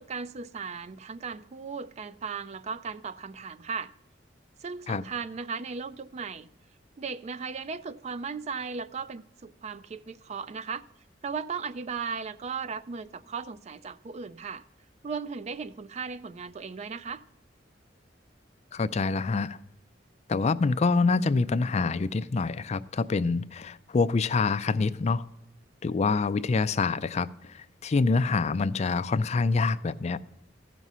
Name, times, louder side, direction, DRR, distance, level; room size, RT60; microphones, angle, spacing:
voice 1, 0.0-3.9 4.6-6.5 7.0-10.9 11.2-14.6 15.0-17.2, right 5 dB, 40° right, 0.4 m, -36 dB
voice 2, 18.7-19.6 20.3-25.2 25.8-30.2, left 4 dB, 35° left, 0.4 m, -26 dB
14.5 x 6.1 x 5.5 m
head